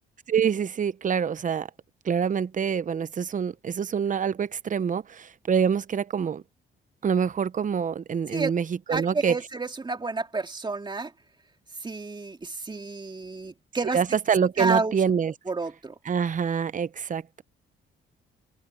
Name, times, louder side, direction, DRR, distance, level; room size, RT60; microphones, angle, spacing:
voice 1, 0.3-1.7 2.1-6.4 7.0-9.3 13.9-15.3 16.1-17.4, right 7 dB, 40° right, 0.9 m, -26 dB
voice 2, 8.9-11.1 11.8-14.0 14.6-15.0 15.5-16.0, right 3 dB, 25° right, 2.3 m, -30 dB
open air
cardioid pair, 90°, 20 cm